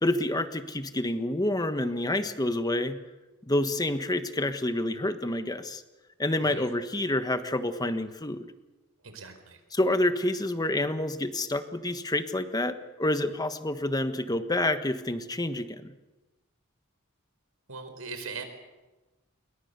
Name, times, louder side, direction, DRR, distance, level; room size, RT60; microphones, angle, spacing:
voice 1, 0.0-3.0 3.5-5.8 6.2-8.5 9.7-15.9, left 1 dB, 20° left, 9 dB, 1.4 m, -28 dB
voice 2, 9.0-9.6 17.7-18.4, right 4 dB, 85° right, 7 dB, 4.7 m, -40 dB
28.0 x 22.5 x 6.9 m, 1.1 s
head